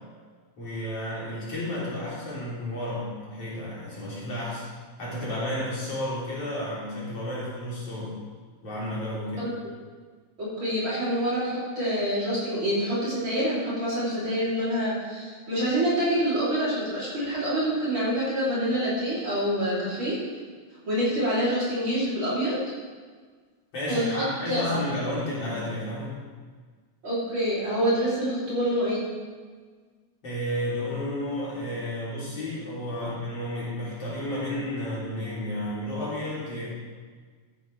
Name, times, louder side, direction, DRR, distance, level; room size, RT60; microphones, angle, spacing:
voice 1, 0.6-4.6 5.0-8.2 8.6-9.5 23.7-26.2 30.2-36.7, left 1 dB, 50° left, -8 dB, 4.3 m, -32 dB
voice 2, 10.4-20.2 20.9-22.6 23.9-24.8 27.0-29.0 33.0-33.1, equal, 40° right, -9 dB, 4.1 m, -26 dB
13.0 x 10.0 x 3.4 m, 1.5 s
omnidirectional pair, 3.5 m